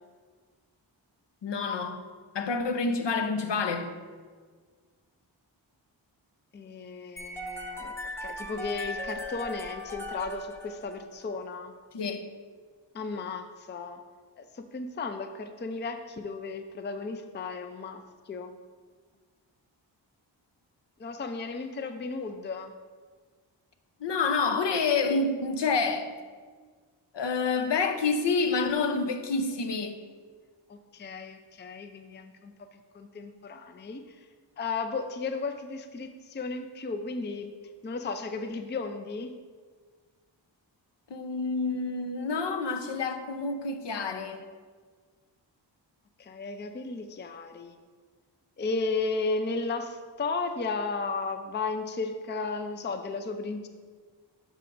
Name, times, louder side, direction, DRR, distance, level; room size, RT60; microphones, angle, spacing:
voice 1, 1.4-2.0 2.3-3.9 11.9-12.3 24.0-26.1 27.1-30.0 41.1-44.4, left 4 dB, 65° left, 0.8 m, -28 dB
voice 2, 6.5-11.7 12.9-14.0 14.4-18.6 21.0-22.7 30.7-32.7 32.9-34.2 34.6-37.5 37.8-39.3 46.2-47.8 48.6-53.7, left 4 dB, 25° left, 0.5 m, -34 dB
sound 1, 7.2-11.3, equal, 5° left, 0.9 m, -38 dB
11.5 x 5.0 x 2.6 m
cardioid pair, 55°, 46 cm